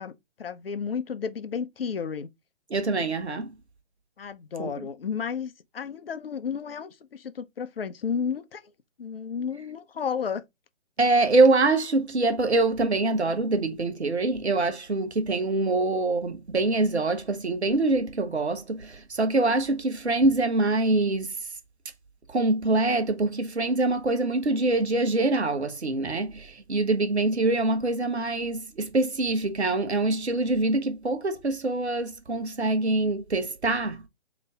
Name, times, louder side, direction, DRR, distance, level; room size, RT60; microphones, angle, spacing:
voice 1, 0.0-2.3 4.2-8.7 9.0-10.4, left 6 dB, 60° left, 0.7 m, -32 dB
voice 2, 2.7-3.5 4.6-4.9 11.0-21.3 22.3-34.0, right 2 dB, 80° right, 0.9 m, -24 dB
4.0 x 3.0 x 3.5 m
figure-of-eight pair, 135°, 33 cm